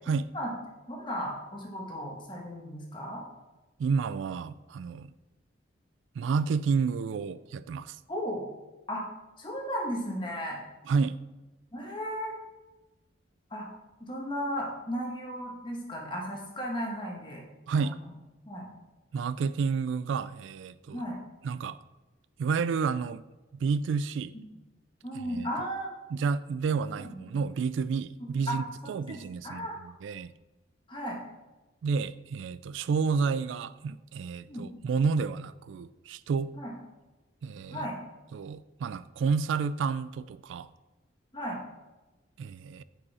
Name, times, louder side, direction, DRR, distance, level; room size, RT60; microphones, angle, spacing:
voice 1, 0.9-3.2 8.1-8.4 8.9-9.0 9.4-10.6 11.7-12.4 13.5-13.7 14.0-17.4 17.8-18.1 18.4-18.7 20.9-21.2 25.0-25.9 27.0-27.4 28.5-28.6 29.1-29.8 30.9-31.2 34.5-34.7 36.5-36.7 37.7-38.0 41.3-41.6, equal, 25° left, -1 dB, 1.4 m, -35 dB
voice 2, 3.8-5.1 6.2-8.0 10.9-11.2 17.7-18.0 19.1-21.0 21.4-21.8 22.4-23.2 23.5-24.3 25.3-25.5 26.1-30.3 31.8-36.5 37.4-37.9 38.3-40.7 42.4-42.8, right 5 dB, 75° right, 15 dB, 0.3 m, -30 dB
8.5 x 5.3 x 4.2 m, 1.1 s
head